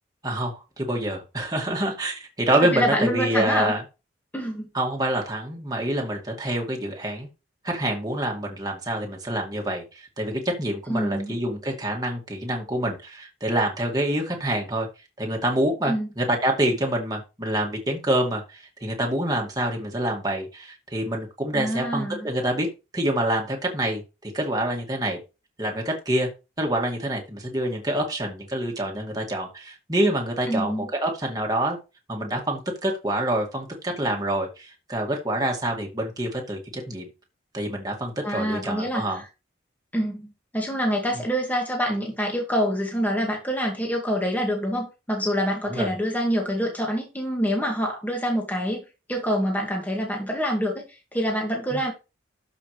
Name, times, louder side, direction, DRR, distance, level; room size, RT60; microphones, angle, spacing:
voice 1, 0.2-3.8 4.7-7.3 7.6-14.9 15.2-22.7 22.9-25.2 25.6-26.3 26.6-31.8 32.1-37.1 37.5-39.2 45.6-45.9 51.7-51.8, right 1 dB, 20° right, 0 dB, 2.1 m, -26 dB
voice 2, 2.6-3.7 4.3-4.7 10.9-11.4 15.8-16.1 21.5-22.3 30.5-30.9 38.2-39.2 39.9-51.9, equal, 10° left, 0 dB, 2.1 m, -26 dB
12.5 x 5.8 x 3.3 m, 0.29 s
head